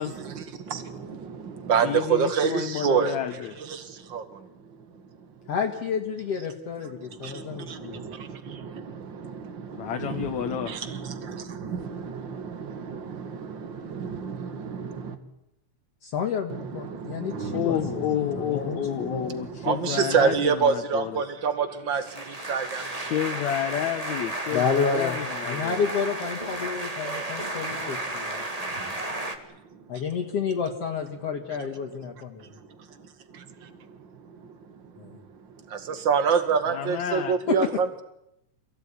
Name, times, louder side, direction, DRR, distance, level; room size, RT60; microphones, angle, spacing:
voice 1, 0.0-5.4 7.0-15.2 16.5-23.2 28.7-29.0 29.5-30.0 32.2-38.0, right 6 dB, 40° right, 10 dB, 2.5 m, -29 dB
voice 2, 1.8-3.5 9.8-10.8 17.5-21.2 23.1-25.9 36.7-37.4, left 11 dB, 70° left, 7 dB, 2.3 m, -30 dB
voice 3, 5.5-8.0 16.0-19.3 24.5-28.3 29.9-32.5 35.0-35.2 37.5-37.6, left 6 dB, 55° left, 1 dB, 2.8 m, -30 dB
sound 1, 21.9-29.4, right 1 dB, 15° right, 1.7 m, -33 dB
27.5 x 17.0 x 9.9 m, 0.83 s
omnidirectional pair, 3.6 m